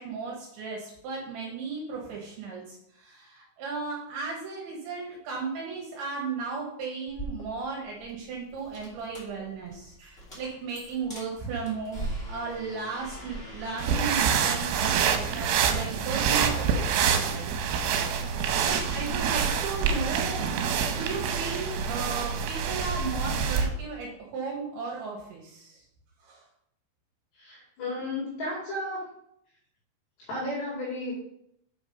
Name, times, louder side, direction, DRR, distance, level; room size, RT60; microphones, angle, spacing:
voice 1, 0.0-17.5 18.6-20.4 20.9-25.8 26.2-26.5, right 4 dB, 70° right, -3 dB, 3.6 m, -35 dB
sound 1, 7.1-15.7, right 1 dB, 20° left, 2.1 m, -41 dB
sound 2, 13.8-23.7, right 7 dB, 90° right, 3.3 m, -26 dB
voice 2, 27.4-29.1 30.3-31.1, left 1 dB, 65° left, -6 dB, 4.1 m, -33 dB
7.6 x 6.0 x 5.3 m, 0.75 s
omnidirectional pair, 5.6 m